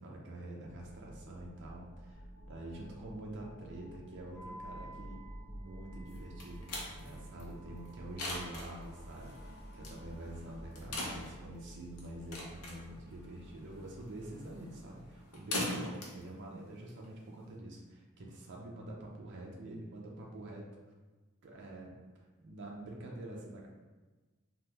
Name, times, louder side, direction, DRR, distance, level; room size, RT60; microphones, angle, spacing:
voice 1, 0.0-1.9 2.4-20.7 21.4-23.7, right 1 dB, 55° right, -2 dB, 0.5 m, -46 dB
sound 1, 0.6-15.2, equal, 45° left, 0.7 m, -51 dB
Wind instrument woodwind instrument, 4.3-10.5, right 1 dB, 10° left, 0.4 m, -56 dB
sound 2, 6.1-17.5, left 1 dB, 85° left, 0.7 m, -43 dB
3.5 x 2.1 x 2.9 m, 1.3 s
head